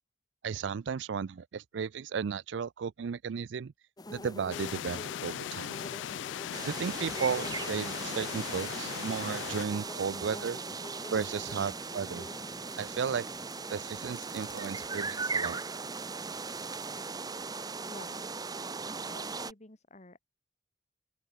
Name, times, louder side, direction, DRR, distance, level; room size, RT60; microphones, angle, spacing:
voice 1, 0.4-3.7 4.1-5.8 6.7-10.6 11.1-12.3 12.8-13.3 13.7-15.6, right 6 dB, 75° right, 0.4 m, -34 dB
sound 1, 4.0-17.1, left 2 dB, 20° left, 1.2 m, -48 dB
sound 2, 4.5-9.7, left 10 dB, 75° left, 0.3 m, -38 dB
sound 3, 6.5-19.5, right 4 dB, 20° right, 0.8 m, -38 dB
voice 2, 17.9-18.2 18.9-20.2, left 2 dB, 40° left, 1.9 m, -50 dB
open air
head